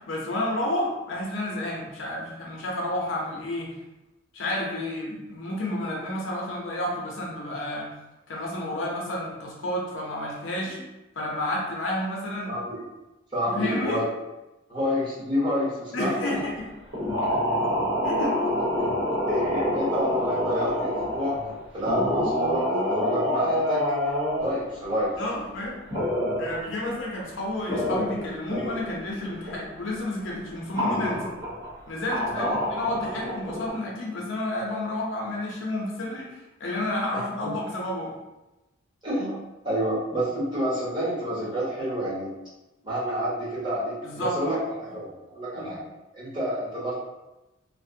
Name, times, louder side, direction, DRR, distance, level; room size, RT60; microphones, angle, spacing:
voice 1, 0.0-3.7 4.3-7.9 8.3-10.8 11.2-12.5 13.5-14.0 15.9-16.7 18.0-18.3 25.2-25.8 26.4-31.4 31.9-38.1 44.0-44.6 45.5-45.7, left 1 dB, 70° left, -3 dB, 0.6 m, -30 dB
voice 2, 12.5-12.8 13.3-14.0 14.7-16.4 19.3-21.4 21.7-23.8 24.4-25.1 32.3-32.6 37.1-37.5 39.0-42.3 42.8-45.8 46.1-46.9, equal, 20° right, -9 dB, 0.9 m, -29 dB
sound 1, 16.9-21.6 21.8-24.6 25.9-26.7 27.2-27.3 27.5-29.0 29.2-29.6 29.9-30.0 30.7-31.7 32.1-33.7, left 1 dB, 55° right, 0.8 m, -27 dB
2.5 x 2.1 x 2.6 m, 1.0 s
head